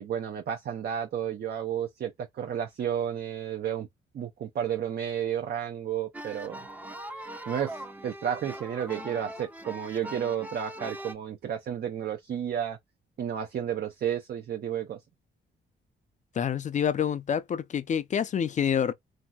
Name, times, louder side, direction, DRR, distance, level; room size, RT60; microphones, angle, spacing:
voice 1, 0.0-3.9 4.1-6.7 7.5-12.8 13.2-15.0, right 9 dB, 50° right, 0.6 m, -32 dB
sound 1, 6.1-11.1, right 1 dB, 10° right, 0.6 m, -41 dB
voice 2, 16.4-18.9, left 8 dB, 40° left, 0.4 m, -27 dB
3.1 x 2.7 x 2.2 m
cardioid pair, 90°, 20 cm